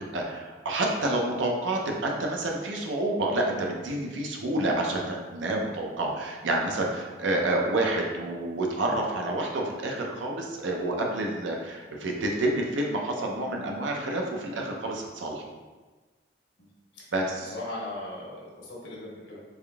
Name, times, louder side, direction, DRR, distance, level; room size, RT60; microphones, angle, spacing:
voice 1, 0.1-15.4 17.1-17.6, right 2 dB, 85° right, 0 dB, 0.6 m, -29 dB
voice 2, 17.5-19.4, left 1 dB, 80° left, -4 dB, 1.0 m, -38 dB
3.5 x 3.4 x 2.3 m, 1.3 s
head